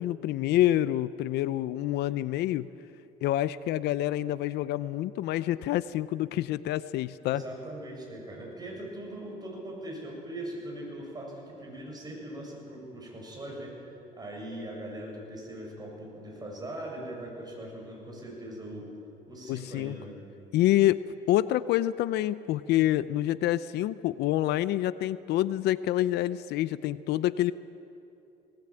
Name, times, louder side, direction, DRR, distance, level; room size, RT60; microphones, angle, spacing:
voice 1, 0.0-2.7 3.2-7.4 19.5-20.0 20.5-21.0 21.3-27.5, left 14 dB, 80° left, 16 dB, 0.6 m, -27 dB
voice 2, 7.3-13.9 14.2-18.9 19.3-20.2, right 1 dB, 25° right, -1 dB, 7.8 m, -40 dB
20.0 x 19.0 x 9.0 m, 2.7 s
cardioid pair, 110°, 17 cm